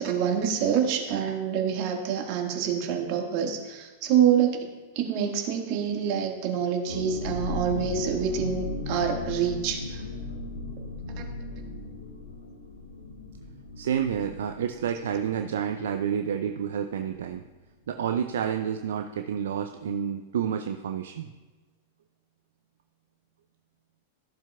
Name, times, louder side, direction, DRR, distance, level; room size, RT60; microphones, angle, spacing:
voice 1, 0.0-4.7 4.9-10.0, right 8 dB, 50° right, 2 dB, 1.7 m, -26 dB
sound 1, 6.8-16.3 16.5-16.6 16.9-17.2, left 3 dB, 85° left, 1.0 m, -36 dB
voice 2, 13.8-17.4 17.9-21.3, right 8 dB, 65° right, 6 dB, 0.5 m, -29 dB
14.5 x 7.3 x 2.3 m, 1.3 s
figure-of-eight pair, 95°, 0 cm